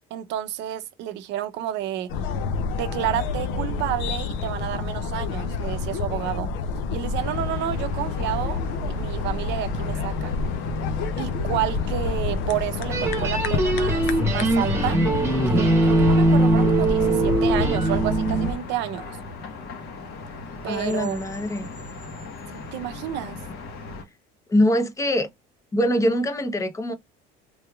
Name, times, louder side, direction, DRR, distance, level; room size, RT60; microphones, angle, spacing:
voice 1, 0.1-2.1 2.8-6.5 6.9-10.3 11.2-15.0 15.5-19.2 20.6-21.2 22.5-23.4, right 12 dB, 65° right, 0.6 m, -30 dB
sound 1, 2.1-18.6, left 4 dB, 75° left, 0.6 m, -28 dB
sound 2, 7.1-24.0, left 3 dB, 55° left, 1.1 m, -38 dB
sound 3, 12.9-18.5, right 2 dB, 15° right, 1.1 m, -21 dB
voice 2, 20.7-21.7 24.5-25.3 25.7-26.9, left 1 dB, 15° left, 0.6 m, -23 dB
3.4 x 3.0 x 2.3 m
cardioid pair, 135°, 20 cm